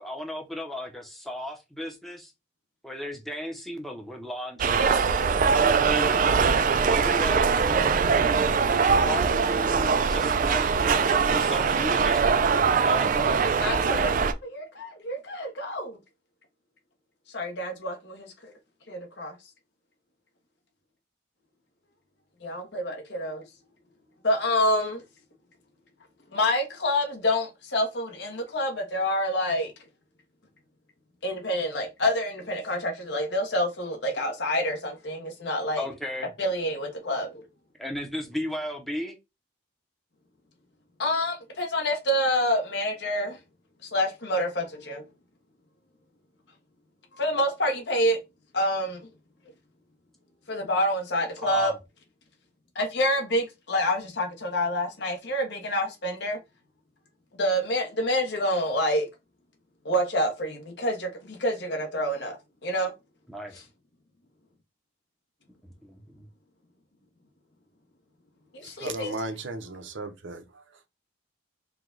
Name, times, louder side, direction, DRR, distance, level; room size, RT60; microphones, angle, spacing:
voice 1, 0.0-2.3 2.8-5.0 5.4-6.4 6.9-8.0 8.6-13.4 35.8-36.3 37.8-39.2 51.4-51.8 63.3-63.5 65.8-66.3, left 1 dB, ahead, 0.7 m, -35 dB
sound 1, 4.6-14.3, right 5 dB, 40° right, 0.3 m, -22 dB
voice 2, 13.5-16.0 17.3-18.5 18.9-19.3 22.4-23.4 24.2-25.0 26.3-29.7 31.2-35.8 36.4-37.4 41.0-43.4 43.8-45.0 47.2-48.2 48.5-49.0 50.5-51.7 52.7-56.4 57.4-59.1 59.8-62.9 68.5-69.1, left 1 dB, 60° left, 1.0 m, -27 dB
voice 3, 68.6-70.6, right 2 dB, 70° right, 0.7 m, -36 dB
4.7 x 2.3 x 3.8 m
head